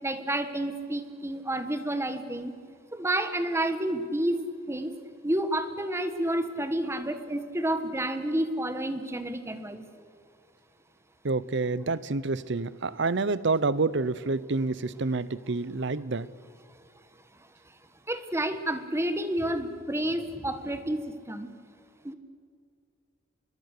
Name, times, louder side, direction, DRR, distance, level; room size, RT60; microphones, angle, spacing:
voice 1, 0.0-2.5 2.9-4.9 5.2-9.8 18.1-21.5 22.0-22.1, right 1 dB, 15° right, 10 dB, 1.3 m, -30 dB
voice 2, 11.2-16.3, right 3 dB, 65° right, 19 dB, 0.8 m, -28 dB
25.0 x 22.0 x 6.7 m, 2.3 s
head